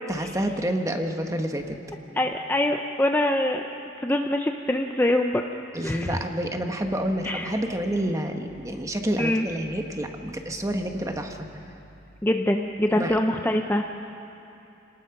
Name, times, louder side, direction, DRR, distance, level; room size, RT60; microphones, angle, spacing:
voice 1, 0.1-1.8 5.7-11.5 12.9-13.2, right 1 dB, 15° right, 4 dB, 1.2 m, -28 dB
voice 2, 2.1-3.6 4.0-5.4 5.8-6.2 7.2-7.5 9.2-9.5 12.2-13.9, left 1 dB, 10° left, 3 dB, 0.6 m, -24 dB
29.0 x 19.0 x 5.9 m, 2.8 s
head